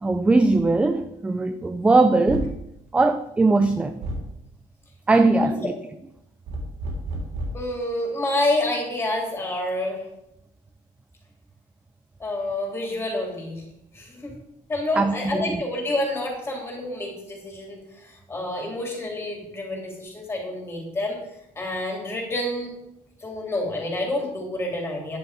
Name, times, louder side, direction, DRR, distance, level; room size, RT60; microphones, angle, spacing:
voice 1, 0.0-2.5 2.9-3.9 5.1-5.7 15.0-15.6, right 3 dB, 10° right, 9 dB, 0.4 m, -20 dB
sound 1, 0.5-0.8 2.3-2.7 4.0-4.3 6.5-7.7, right 1 dB, 55° right, 3.4 m, -31 dB
voice 2, 5.3-5.7 7.5-10.0 12.2-13.6 13.9-14.3 14.7-21.2 21.5-22.7 23.2-25.2, left 1 dB, 15° left, 0 dB, 3.3 m, -28 dB
11.0 x 9.9 x 5.0 m, 0.83 s
cardioid pair, 170°, 15 cm